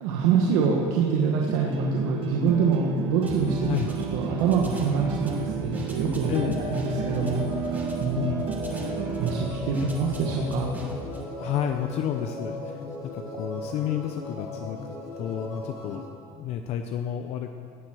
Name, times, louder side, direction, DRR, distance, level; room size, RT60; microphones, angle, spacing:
voice 1, 0.0-3.7 4.1-6.3 6.7-8.2 9.2-10.7, right 5 dB, 90° right, -1 dB, 1.4 m, -25 dB
sound 1, 1.5-9.5, right 7 dB, 45° right, 1.4 m, -32 dB
sound 2, 3.2-11.2, right 1 dB, 15° right, 1.8 m, -39 dB
voice 2, 6.3-6.7 8.2-8.5 9.8-9.9 11.4-12.8 13.1-14.8 15.2-17.5, left 10 dB, 55° left, 6 dB, 0.7 m, -30 dB
sound 3, 6.4-16.1, left 2 dB, 90° left, 2.4 m, -37 dB
16.5 x 7.7 x 6.3 m, 2.3 s
cardioid pair, 140°, 13 cm